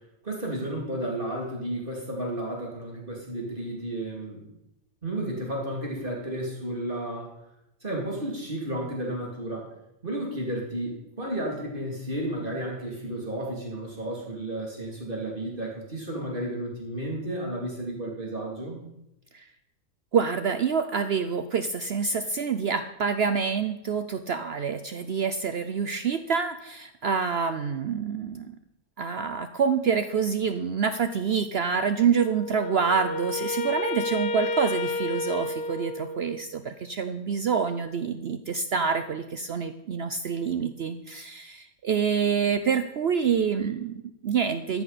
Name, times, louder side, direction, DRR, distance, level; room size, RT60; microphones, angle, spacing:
voice 1, 0.2-4.5 5.0-7.3 7.8-9.7 10.0-18.8, right 1 dB, 35° right, -2 dB, 3.0 m, -32 dB
voice 2, 20.1-28.5 29.0-44.8, right 6 dB, 55° right, 10 dB, 0.7 m, -27 dB
Wind instrument woodwind instrument, 32.1-36.5, left 2 dB, 50° left, 1.0 m, -31 dB
14.0 x 10.5 x 4.2 m, 0.85 s
omnidirectional pair, 1.5 m